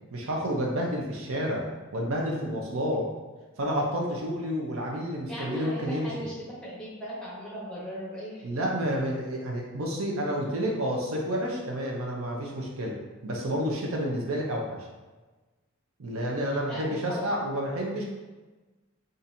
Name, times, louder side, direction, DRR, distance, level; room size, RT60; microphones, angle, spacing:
voice 1, 0.1-1.6 1.9-3.1 3.6-6.3 8.4-13.0 13.2-14.9 16.0-18.1, equal, 80° right, -1 dB, 0.6 m, -30 dB
voice 2, 5.3-6.3 6.6-8.6 16.7-17.3, equal, 5° left, -7 dB, 1.1 m, -38 dB
4.2 x 2.5 x 2.6 m, 1.2 s
head